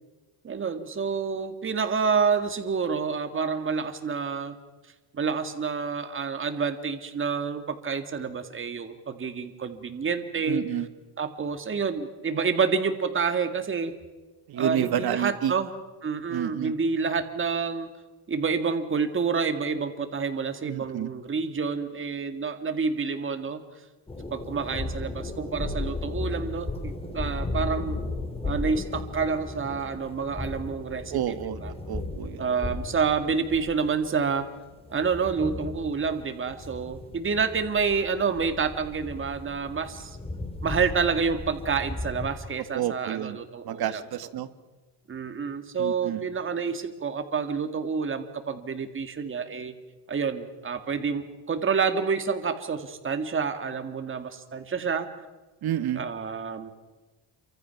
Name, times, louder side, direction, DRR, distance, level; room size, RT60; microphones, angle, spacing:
voice 1, 0.4-4.6 5.1-10.7 11.2-13.9 14.5-15.7 16.0-17.9 18.3-23.6 24.3-28.0 28.4-31.7 32.4-34.5 34.9-40.2 40.6-44.0 45.1-49.7 50.1-55.1 56.0-56.7, right 5 dB, 25° right, 7 dB, 2.0 m, -28 dB
voice 2, 10.5-10.9 14.5-15.5 16.3-16.7 20.6-21.1 31.1-31.6 31.9-32.4 42.7-43.4 43.6-44.5 45.8-46.2 55.6-56.0, right 11 dB, 50° right, 11 dB, 1.6 m, -29 dB
sound 1, 24.1-42.3, left 2 dB, 10° left, 3.7 m, -35 dB
27.5 x 25.0 x 5.9 m, 1.2 s
cardioid pair, 140°, 47 cm